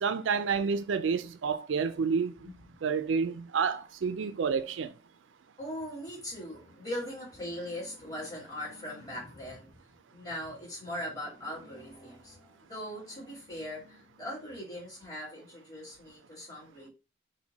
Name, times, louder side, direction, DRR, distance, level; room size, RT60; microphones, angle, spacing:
voice 1, 0.0-2.3 2.8-4.9, right 5 dB, 80° right, 0.4 m, -29 dB
voice 2, 5.6-9.8 10.1-16.9, left 1 dB, 20° left, 2.2 m, -40 dB
4.5 x 2.2 x 4.1 m
head